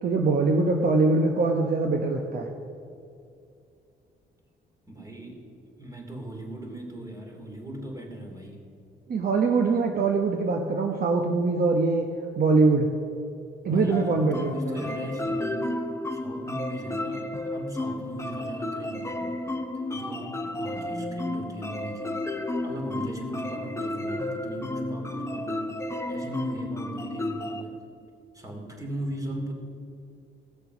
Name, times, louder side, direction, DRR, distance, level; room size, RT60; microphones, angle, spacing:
voice 1, 0.0-2.5 9.1-12.1 12.4-12.9 13.6-14.5, right 3 dB, 50° right, 3 dB, 1.0 m, -23 dB
voice 2, 4.9-5.4 5.8-8.7 13.7-15.7 16.1-19.5 19.9-22.2 22.6-25.8 26.0-27.8 28.3-29.5, right 1 dB, 15° right, 1 dB, 2.7 m, -38 dB
sound 1, 13.9-27.6, left 1 dB, 15° left, 0.9 m, -32 dB
17.5 x 6.7 x 6.0 m, 2.5 s
cardioid pair, 90°, 20 cm